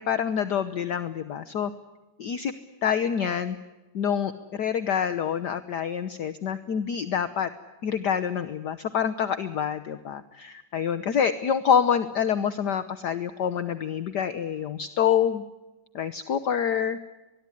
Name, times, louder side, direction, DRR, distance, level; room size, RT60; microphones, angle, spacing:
voice 1, 0.0-1.7 2.2-2.5 2.8-3.6 3.9-7.5 7.8-15.4 15.9-17.0, left 8 dB, 55° left, 12 dB, 1.5 m, -26 dB
24.5 x 21.5 x 9.9 m, 1.1 s
omnidirectional pair, 2.3 m